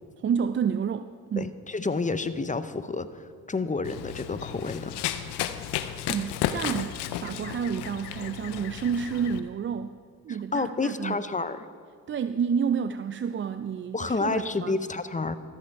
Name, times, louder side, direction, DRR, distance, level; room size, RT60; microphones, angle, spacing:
voice 1, 0.2-1.5 6.1-10.0 10.2-11.2 12.1-14.8, right 7 dB, 30° right, 11 dB, 0.4 m, -30 dB
voice 2, 1.4-3.1 3.5-5.0 10.5-11.7 13.9-15.4, left 3 dB, 20° left, 12 dB, 0.6 m, -29 dB
Run, 3.8-9.4, left 11 dB, 85° left, 0.6 m, -33 dB
13.5 x 7.7 x 4.6 m, 2.2 s
supercardioid pair, 50°, 39 cm